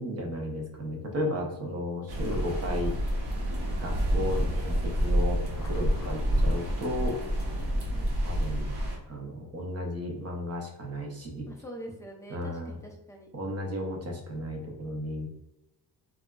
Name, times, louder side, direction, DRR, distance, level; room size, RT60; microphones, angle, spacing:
voice 1, 0.0-3.0 3.8-7.2 8.2-8.7 9.1-11.5 12.3-12.8 13.3-15.3, left 1 dB, 35° right, 1 dB, 0.6 m, -34 dB
sound 1, 2.1-9.0, equal, 65° right, 0.9 m, -28 dB
sound 2, 2.3-4.4 5.4-8.0, left 2 dB, 35° left, 0.9 m, -53 dB
voice 2, 6.0-6.5 7.6-8.1 11.4-13.3, equal, 10° left, 0 dB, 0.4 m, -45 dB
3.8 x 2.3 x 2.2 m, 0.99 s
wide cardioid pair, 165°, 42 cm